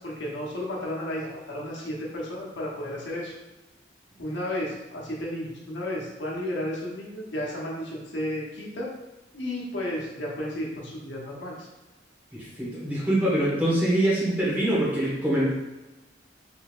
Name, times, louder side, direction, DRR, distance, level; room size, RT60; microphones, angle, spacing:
voice 1, 0.0-3.3 4.2-8.9 9.3-11.6, left 1 dB, 75° left, -4 dB, 1.0 m, -33 dB
voice 2, 12.3-15.5, right 1 dB, 10° right, -7 dB, 1.2 m, -24 dB
3.9 x 3.3 x 2.5 m, 1.0 s
head